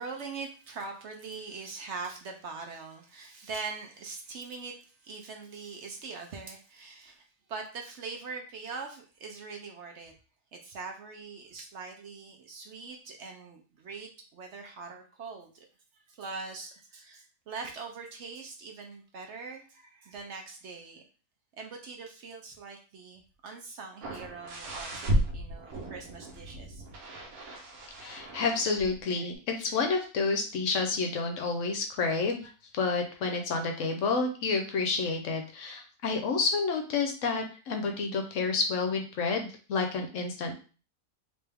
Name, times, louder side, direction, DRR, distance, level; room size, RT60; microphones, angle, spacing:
voice 1, 0.0-10.1 10.5-15.7 15.9-21.0 21.6-26.8 27.2-27.3, right 4 dB, 60° right, 3 dB, 0.8 m, -42 dB
sound 1, 24.0-29.0 29.3-29.4, equal, 80° right, 1.2 m, -34 dB
voice 2, 28.0-40.5, left 4 dB, 65° left, 4 dB, 0.9 m, -29 dB
3.4 x 3.0 x 3.3 m, 0.36 s
omnidirectional pair, 1.5 m